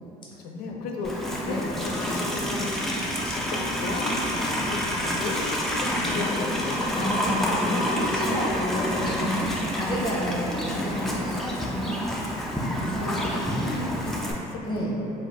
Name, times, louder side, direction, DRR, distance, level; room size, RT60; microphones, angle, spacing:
voice 1, 0.4-2.9 3.2-7.2 7.7-7.9 8.2-8.8 9.2-9.8 10.7-11.1 12.9-14.9, left 3 dB, 80° left, 0 dB, 0.4 m, -35 dB
Livestock farm animals working animals, 1.0-14.3, equal, ahead, 0.3 m, -28 dB
voice 2, 6.9-12.1 12.8-13.2 14.7-14.9, equal, 30° left, -5 dB, 0.7 m, -30 dB
2.5 x 2.3 x 3.4 m, 3.0 s
cardioid pair, 115°, 16 cm